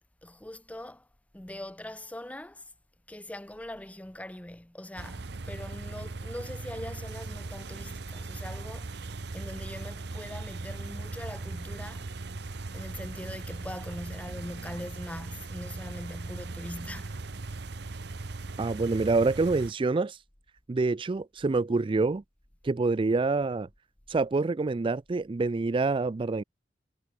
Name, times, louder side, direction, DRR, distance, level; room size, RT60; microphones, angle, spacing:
voice 1, 0.2-1.1 1.3-2.6 3.1-9.1 9.3-12.1 12.7-17.2, left 1 dB, 10° left, 0.8 m, -42 dB
sound 1, 5.0-19.7, right 3 dB, 65° right, 0.9 m, -39 dB
voice 2, 18.6-20.2 20.7-22.2 22.6-23.7 24.1-26.4, right 3 dB, 30° right, 0.4 m, -26 dB
head